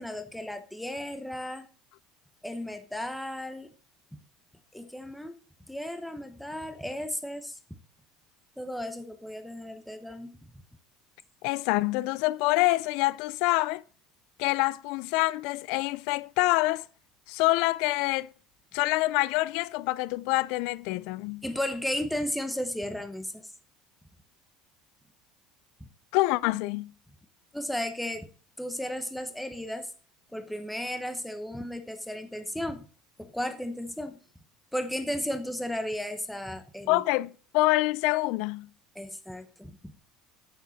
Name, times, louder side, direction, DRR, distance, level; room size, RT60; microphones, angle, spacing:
voice 1, 0.0-1.6 2.4-3.7 4.7-5.4 5.7-7.6 8.6-10.3 21.4-23.5 25.8-25.9 27.5-28.3 28.6-29.9 30.3-32.9 33.2-34.2 34.7-37.0 38.9-39.7, left 1 dB, ahead, 0.9 m, -34 dB
voice 2, 11.4-13.8 14.4-16.8 17.3-18.3 18.7-21.4 26.1-26.9 36.9-38.7, left 20 dB, 70° left, 0.3 m, -26 dB
10.0 x 7.3 x 4.0 m
cardioid pair, 155°, 0 cm